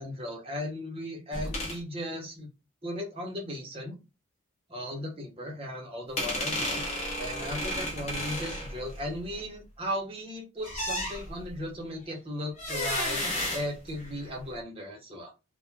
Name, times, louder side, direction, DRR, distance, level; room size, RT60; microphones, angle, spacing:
voice 1, 0.0-2.5 2.8-4.0 4.7-6.8 7.2-13.2 13.5-15.3, left 1 dB, 25° right, 0 dB, 0.7 m, -36 dB
sound 1, 1.3-1.8 6.2-9.4 10.6-11.6 12.6-14.3, left 1 dB, 30° left, 0.7 m, -33 dB
2.2 x 2.1 x 3.1 m, 0.27 s
head